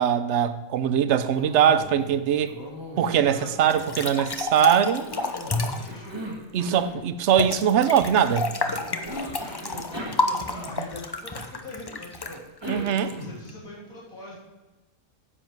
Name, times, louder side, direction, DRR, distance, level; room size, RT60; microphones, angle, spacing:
voice 1, 0.0-2.5 3.0-5.1 6.5-8.5 12.7-13.2, right 9 dB, 60° right, 0.8 m, -22 dB
Cough, 1.3-2.2 2.5-4.5 5.1-7.0 9.0-11.0 12.2-13.6, right 1 dB, 20° right, 1.6 m, -38 dB
voice 2, 3.0-3.5 5.3-6.1 8.7-12.3 13.1-14.3, left 1 dB, 70° left, 3.1 m, -41 dB
sound 1, 3.7-5.9 7.4-13.5, left 3 dB, 40° left, 0.3 m, -30 dB
9.8 x 7.6 x 4.6 m
omnidirectional pair, 1.5 m